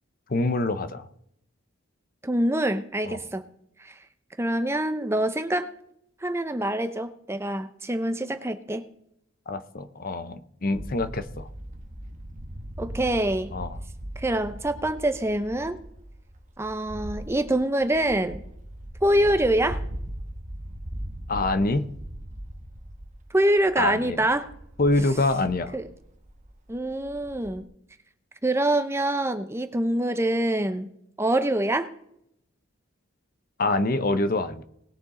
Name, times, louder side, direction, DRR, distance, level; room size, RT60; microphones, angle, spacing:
voice 1, 0.3-1.1 3.0-3.2 9.5-11.5 13.5-13.8 21.3-21.9 23.8-24.3 24.8-25.7 33.6-34.6, left 2 dB, 45° left, 11 dB, 0.7 m, -25 dB
voice 2, 2.2-3.4 3.8-4.0 4.4-5.7 6.2-8.8 12.8-13.5 14.2-15.8 16.6-18.4 19.0-19.8 23.3-24.5 25.7-25.8 26.7-27.7 28.4-30.9 31.2-31.9, right 1 dB, 10° right, 9 dB, 0.6 m, -25 dB
sound 1, 10.7-27.6, right 1 dB, 35° right, 1.1 m, -39 dB
19.5 x 7.0 x 3.8 m, 0.73 s
head